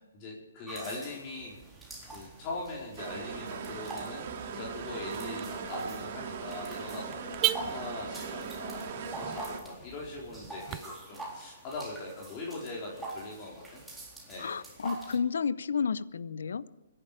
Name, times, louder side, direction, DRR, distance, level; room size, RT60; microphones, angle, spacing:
voice 1, 0.1-1.6 2.0-7.2 7.6-13.8 14.3-14.5, left 2 dB, 35° left, 4.4 m, -41 dB
sound 1, 0.7-15.2, right 2 dB, 5° right, 4.0 m, -45 dB
Car / Alarm, 1.6-10.8, right 16 dB, 30° right, 0.6 m, -40 dB
sound 2, 3.0-9.6, right 5 dB, 45° right, 2.5 m, -39 dB
voice 2, 14.4-16.7, left 6 dB, 70° left, 0.7 m, -31 dB
24.0 x 11.0 x 5.0 m
hypercardioid pair, 135°, 0 cm